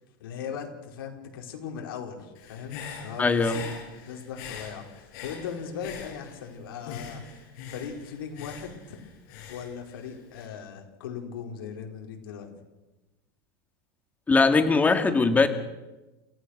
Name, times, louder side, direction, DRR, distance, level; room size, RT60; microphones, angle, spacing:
voice 1, 0.2-7.3 7.6-9.0 9.5-12.5, left 7 dB, 85° left, 3 dB, 4.8 m, -39 dB
Human voice / Breathing, 2.3-6.5 6.8-10.5, left 6 dB, 60° left, 7.7 m, -43 dB
voice 2, 3.2-3.6 14.3-15.5, left 4 dB, 15° left, 8 dB, 2.0 m, -20 dB
30.0 x 16.5 x 6.6 m, 1.1 s
supercardioid pair, 140°, 12 cm